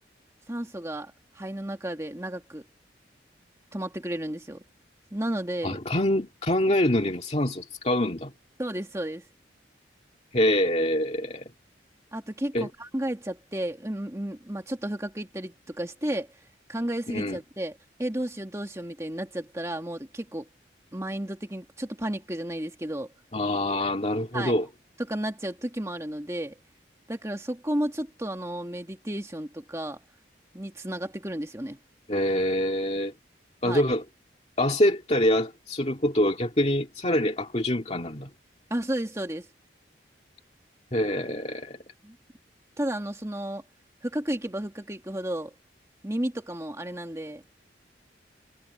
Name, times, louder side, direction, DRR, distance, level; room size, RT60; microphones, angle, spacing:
voice 1, 0.5-2.6 3.7-4.6 5.1-5.8 8.6-9.3 12.1-16.3 16.7-20.5 20.9-23.1 24.3-24.6 25.1-26.5 27.1-30.0 30.5-31.8 33.6-33.8 38.7-39.5 42.0-42.2 42.8-43.6 44.0-45.5 46.0-47.4, right 1 dB, 15° right, 1.9 m, -32 dB
voice 2, 5.6-8.3 10.3-11.4 12.5-12.7 17.1-17.4 23.3-24.7 32.1-33.1 33.6-34.0 34.6-38.3 40.9-41.8, left 1 dB, 35° left, 2.3 m, -25 dB
head